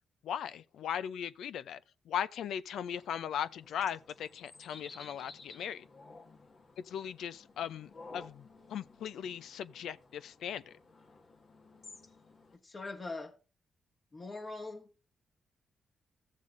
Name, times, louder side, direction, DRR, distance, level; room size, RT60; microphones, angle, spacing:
voice 1, 0.2-1.8 2.1-5.9 6.9-10.7, left 9 dB, 80° left, 0.5 m, -38 dB
sound 1, 3.0-12.6, left 3 dB, 55° left, 1.8 m, -55 dB
voice 2, 12.6-13.3 14.1-14.9, left 3 dB, 40° left, 2.0 m, -42 dB
14.5 x 7.3 x 2.6 m
cardioid pair, 65°, 0 cm